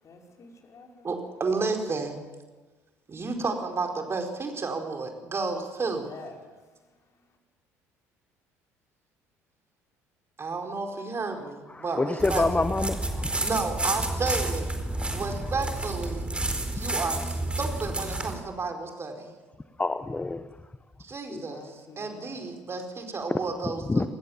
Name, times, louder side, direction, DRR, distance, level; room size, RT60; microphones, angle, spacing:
voice 1, 0.0-1.1 5.9-6.4 21.3-22.6, left 3 dB, 45° left, 1 dB, 5.6 m, -48 dB
voice 2, 1.0-2.2 3.1-6.1 10.4-12.4 13.4-14.6 15.1-16.3 16.7-19.3 21.0-24.1, right 4 dB, 35° right, 4 dB, 4.7 m, -32 dB
voice 3, 11.7-13.5 19.8-20.4 21.3-21.4 23.9-24.1, left 3 dB, 15° left, 12 dB, 1.1 m, -27 dB
sound 1, 12.2-18.3, right 2 dB, 15° right, 4.4 m, -30 dB
27.5 x 20.0 x 7.4 m, 1.3 s
hypercardioid pair, 55°, 8 cm